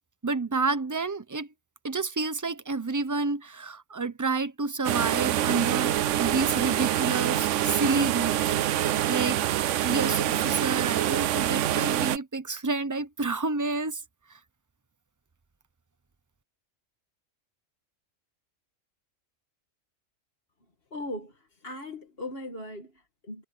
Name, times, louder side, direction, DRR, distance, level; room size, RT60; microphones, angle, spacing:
voice 1, 0.2-1.5 1.8-8.6 9.1-14.0 14.3-14.4, right 3 dB, 15° right, 0.8 m, -29 dB
sound 1, 4.8-12.2, right 12 dB, 70° right, 0.9 m, -26 dB
voice 2, 20.9-23.4, left 1 dB, 45° left, 2.3 m, -39 dB
omnidirectional pair, 1.4 m